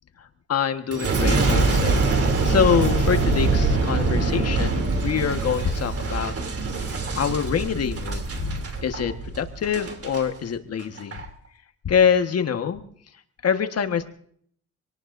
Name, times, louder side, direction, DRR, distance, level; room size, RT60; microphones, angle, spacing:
voice 1, 0.2-2.0 2.4-6.3 7.2-8.6 8.8-11.2 11.8-12.8 13.4-14.1, left 7 dB, 55° left, 8 dB, 1.5 m, -25 dB
Boom, 0.9-10.2 10.8-11.2, right 3 dB, 50° right, 3.0 m, -24 dB
sound 1, 1.9-6.9, right 3 dB, 15° right, 4.4 m, -40 dB
26.5 x 18.5 x 2.6 m, 0.62 s
cardioid pair, 90°, 30 cm